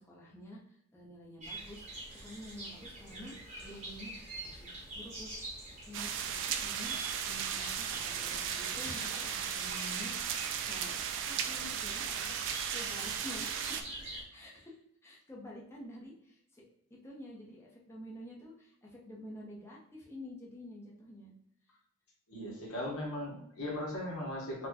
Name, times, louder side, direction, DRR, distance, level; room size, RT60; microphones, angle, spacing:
voice 1, 0.0-1.9 2.2-5.3 5.9-10.2 10.7-13.8 14.3-21.3, left 1 dB, 10° left, -4 dB, 0.7 m, -49 dB
sound 1, 1.4-14.2, right 2 dB, 30° right, 1.0 m, -46 dB
sound 2, 5.9-13.8, right 8 dB, 55° right, 0.3 m, -36 dB
voice 2, 22.3-24.7, left 1 dB, 65° left, -3 dB, 1.0 m, -38 dB
4.1 x 2.2 x 2.9 m, 0.74 s
head